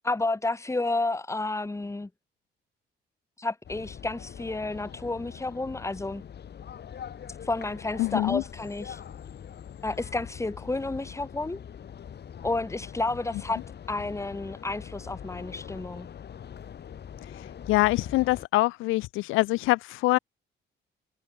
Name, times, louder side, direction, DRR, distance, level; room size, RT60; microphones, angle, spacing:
voice 1, 0.0-2.1 3.4-6.2 7.4-9.0 9.8-11.6 12.4-13.6 13.9-16.1, left 2 dB, 15° left, 2.8 m, -31 dB
sound 1, 3.6-18.5, left 8 dB, 55° left, 4.8 m, -43 dB
voice 2, 8.0-8.4 17.7-20.2, left 19 dB, 90° left, 0.5 m, -24 dB
cardioid pair, 90°, 20 cm